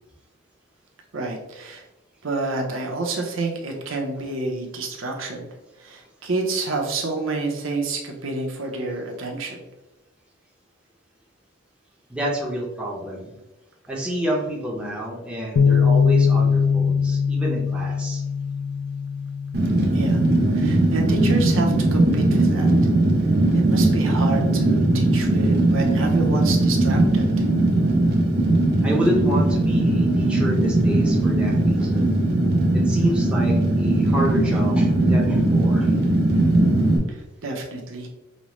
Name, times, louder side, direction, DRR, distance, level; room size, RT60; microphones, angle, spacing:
voice 1, 1.1-1.8 2.2-5.4 5.8-9.6 19.9-20.2 20.5-22.7 23.5-27.3 37.1-38.1, right 3 dB, 90° right, 1 dB, 0.8 m, -29 dB
voice 2, 12.1-13.3 13.9-18.2 22.8-23.0 28.8-32.1 32.7-36.0, equal, 5° right, -4 dB, 0.7 m, -29 dB
sound 1, 15.6-21.8, left 6 dB, 60° left, 0.3 m, -22 dB
Fire, 19.5-37.0, right 2 dB, 55° right, 0.7 m, -19 dB
5.2 x 2.1 x 3.0 m, 1.0 s
head